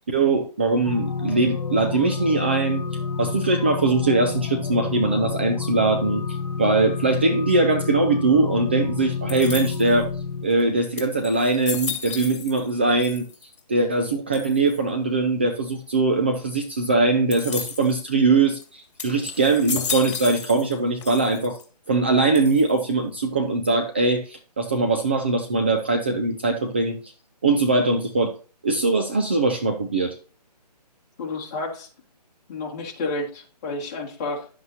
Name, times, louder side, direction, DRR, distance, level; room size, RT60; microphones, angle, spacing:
voice 1, 0.1-2.8 3.2-6.2 6.6-10.1 10.4-13.3 13.7-21.6 21.9-27.0 27.4-28.3 28.6-30.2, right 3 dB, 15° right, 5 dB, 0.5 m, -21 dB
sound 1, 0.8-10.5, left 5 dB, 75° left, 1.3 m, -29 dB
sound 2, 9.3-10.0 10.6-10.7 11.0-12.7 13.0-13.6 14.3-14.8 17.3-18.0 18.5-18.6 19.0-20.7 21.0-21.6 22.3-22.9, left 6 dB, 45° left, 2.6 m, -33 dB
voice 2, 31.2-31.9 32.5-34.5, left 2 dB, 25° left, -2 dB, 2.7 m, -30 dB
11.0 x 7.9 x 2.8 m, 0.37 s
hypercardioid pair, 170°, 21 cm